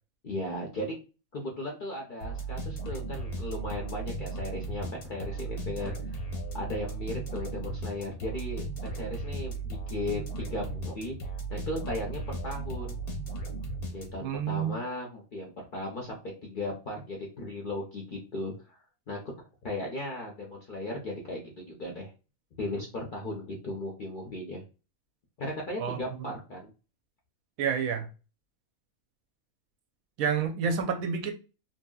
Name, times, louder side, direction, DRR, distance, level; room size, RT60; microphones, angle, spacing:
voice 1, 0.2-0.9 1.3-6.2 6.5-11.2 11.5-13.0 13.9-18.8 19.1-19.2 19.6-22.1 22.6-24.6 25.4-26.7, left 1 dB, 55° left, 0.5 m, -36 dB
sound 1, 2.2-14.4, right 2 dB, 90° left, 1.3 m, -36 dB
voice 2, 14.2-14.8 25.8-26.3 27.6-28.1 30.2-31.3, right 6 dB, 85° right, 1.0 m, -29 dB
2.7 x 2.7 x 2.3 m
omnidirectional pair, 1.5 m